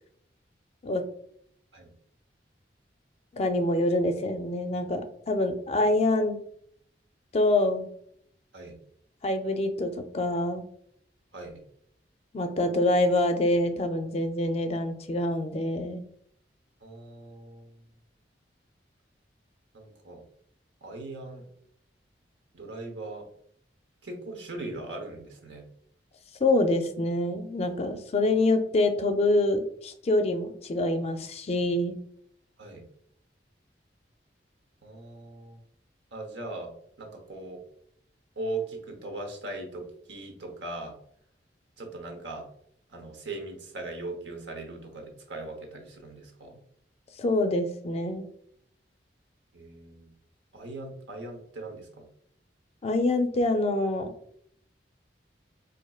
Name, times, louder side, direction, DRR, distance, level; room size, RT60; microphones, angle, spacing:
voice 1, 3.3-6.4 7.3-7.9 9.2-10.7 12.3-16.0 26.4-32.0 47.2-48.3 52.8-54.1, left 2 dB, 35° left, 7 dB, 0.4 m, -26 dB
voice 2, 16.8-17.7 19.7-20.2 20.8-21.4 22.5-23.2 24.0-25.6 32.6-32.8 34.8-35.6 36.1-36.7 37.0-37.6 38.4-40.9 41.8-42.5 42.9-46.6 49.5-50.1 50.5-52.0, right 2 dB, 85° right, 3 dB, 0.9 m, -39 dB
4.2 x 2.6 x 2.3 m, 0.66 s
head